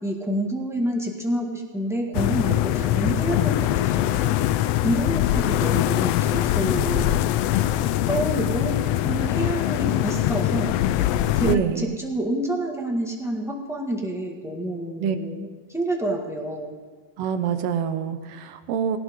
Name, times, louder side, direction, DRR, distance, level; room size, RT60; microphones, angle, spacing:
voice 1, 0.0-4.5 4.8-7.2 8.1-10.8 11.4-16.7, right 1 dB, ahead, 0 dB, 0.7 m, -28 dB
Esperance Wind Farm, 2.1-11.6, left 13 dB, 80° left, 1.4 m, -22 dB
voice 2, 11.4-12.0 15.0-15.2 17.2-19.0, right 7 dB, 65° right, 8 dB, 1.7 m, -25 dB
18.0 x 17.5 x 3.7 m, 1.5 s
omnidirectional pair, 3.3 m